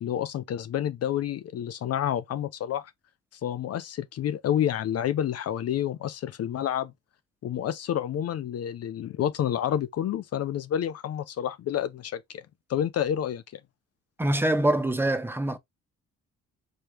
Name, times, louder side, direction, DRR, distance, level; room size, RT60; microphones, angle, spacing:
voice 1, 0.0-2.9 3.3-6.9 7.4-12.4 12.7-13.6, left 10 dB, 55° left, 0.5 m, -29 dB
voice 2, 14.2-15.6, right 1 dB, 5° right, 0.8 m, -24 dB
4.9 x 2.8 x 3.2 m
cardioid pair, 90°, 30 cm